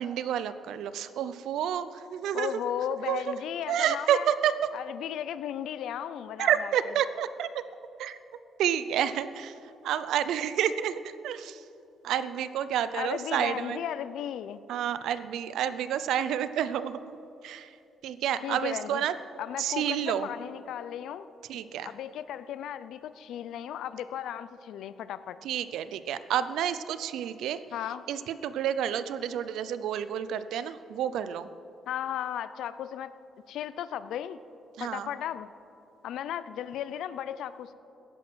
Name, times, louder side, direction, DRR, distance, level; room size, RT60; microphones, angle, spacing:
voice 1, 0.0-2.6 3.1-3.4 3.7-4.5 6.4-7.5 8.0-8.2 8.6-9.5 9.8-11.6 12.0-13.8 14.7-17.2 17.4-17.7 18.0-19.1 19.6-20.3 21.5-21.9 25.4-27.6 28.1-31.5 34.8-35.1, right 9 dB, 80° right, 13 dB, 0.6 m, -29 dB
voice 2, 2.3-4.3 4.7-6.7 12.9-14.6 18.4-19.0 19.4-21.3 21.8-25.4 27.7-28.0 31.9-33.1 33.5-34.4 34.8-35.5 36.0-37.7, left 10 dB, 80° left, 14 dB, 0.5 m, -35 dB
16.0 x 10.5 x 6.3 m, 2.8 s
cardioid pair, 90°, 0 cm